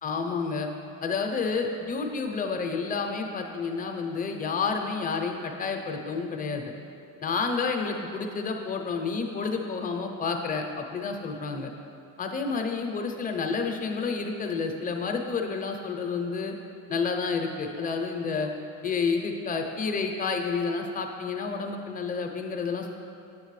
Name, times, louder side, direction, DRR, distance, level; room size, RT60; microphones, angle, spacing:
voice 1, 0.0-0.7 1.0-6.7 7.2-11.7 12.2-16.5 16.9-18.5 18.8-22.9, left 4 dB, 25° left, 3 dB, 0.6 m, -30 dB
9.1 x 7.4 x 3.2 m, 2.6 s
cardioid pair, 145°, 35 cm